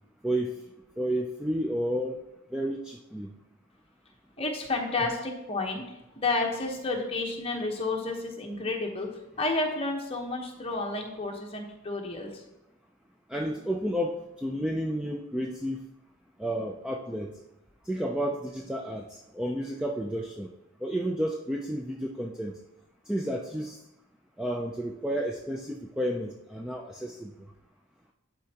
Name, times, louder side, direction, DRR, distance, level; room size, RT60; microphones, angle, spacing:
voice 1, 1.0-2.1 2.5-3.3 13.3-15.8 16.4-17.3 17.9-20.5 20.8-22.6 23.1-23.8 24.4-27.3, equal, 5° right, 0 dB, 0.3 m, -31 dB
voice 2, 4.4-12.4, left 3 dB, 25° left, 1 dB, 1.0 m, -31 dB
11.0 x 4.4 x 2.9 m, 0.93 s
head